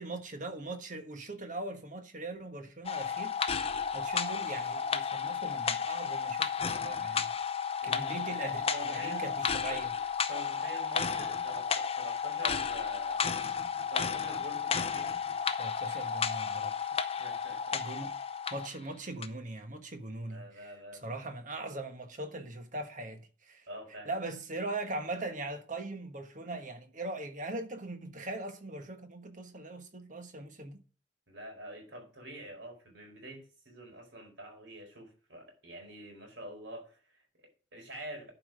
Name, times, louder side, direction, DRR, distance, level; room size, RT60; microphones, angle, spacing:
voice 1, 0.0-3.4 3.9-7.3 7.8-9.9 15.6-17.0 17.7-18.2 18.5-20.7 21.0-23.7 24.0-30.8, right 2 dB, 40° right, 1.3 m, -40 dB
sound 1, 2.8-18.8 19.2-19.3, left 6 dB, 30° left, 0.6 m, -33 dB
voice 2, 7.8-9.8 10.3-13.4 13.9-15.1 17.2-17.8 20.2-21.2 23.7-24.1 31.3-38.3, equal, 60° right, 4.7 m, -47 dB
11.5 x 5.0 x 5.3 m
head